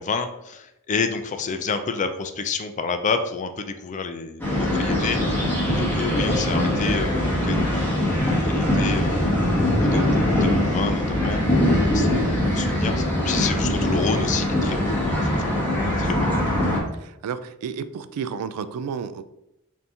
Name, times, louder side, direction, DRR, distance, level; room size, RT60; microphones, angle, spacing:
voice 1, 0.0-8.2 8.4-9.4 9.8-15.7 16.0-16.3, left 4 dB, 35° left, 8 dB, 0.4 m, -29 dB
sound 1, 4.4-16.8, left 1 dB, 10° left, 1.0 m, -22 dB
voice 2, 17.0-19.2, right 6 dB, 85° right, 13 dB, 0.3 m, -31 dB
4.2 x 2.7 x 3.5 m, 0.86 s
head